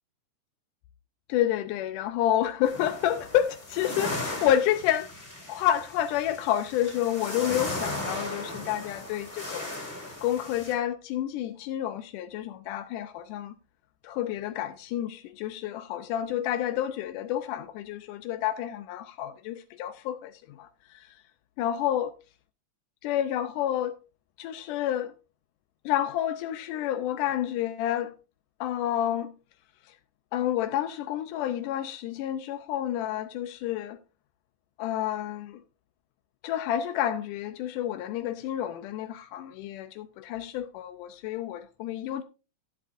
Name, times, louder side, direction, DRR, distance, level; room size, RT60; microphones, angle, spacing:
voice 1, 1.3-5.1 5.5-9.7 10.2-13.5 14.0-21.2 21.6-22.1 23.0-24.0 24.4-25.1 25.9-28.1 28.6-29.3 29.9-30.0 30.3-34.0 34.8-35.6 36.4-42.2, left 11 dB, 85° left, 2.2 m, -29 dB
sound 1, 2.6-10.7, left 1 dB, 15° left, 3.4 m, -37 dB
12.0 x 11.0 x 2.5 m
omnidirectional pair, 3.6 m